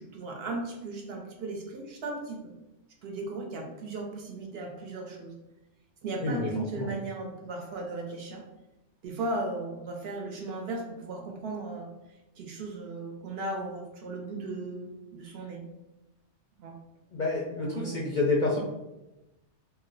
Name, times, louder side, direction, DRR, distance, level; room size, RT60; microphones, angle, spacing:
voice 1, 0.0-2.5 3.0-5.3 6.0-8.4 9.0-11.9 12.4-15.6 16.6-16.8 17.6-18.1, right 2 dB, 65° right, 1 dB, 0.8 m, -36 dB
voice 2, 17.1-18.6, left 3 dB, 60° left, -3 dB, 0.5 m, -28 dB
2.4 x 2.1 x 3.7 m, 0.97 s
omnidirectional pair, 1.2 m